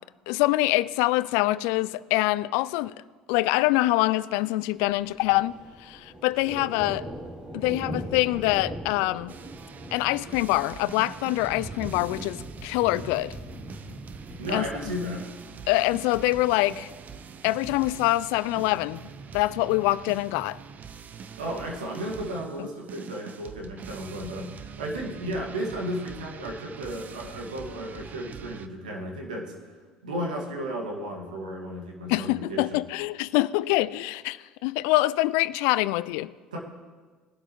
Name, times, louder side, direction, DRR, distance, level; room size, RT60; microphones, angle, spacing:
voice 1, 0.3-2.9 3.3-7.1 7.5-9.4 9.9-13.3 14.5-14.7 15.7-16.9 17.4-20.6 32.1-36.3, left 18 dB, 70° left, 0.3 m, -25 dB
Thunder, 4.8-20.4, equal, 25° right, 3.0 m, -42 dB
sound 1, 9.3-28.7, right 6 dB, 40° right, 0.7 m, -44 dB
voice 2, 14.4-15.3 21.4-29.5 30.0-32.8 36.5-36.6, equal, 85° right, 2.0 m, -34 dB
20.5 x 11.5 x 3.1 m
hypercardioid pair, 65°, 4 cm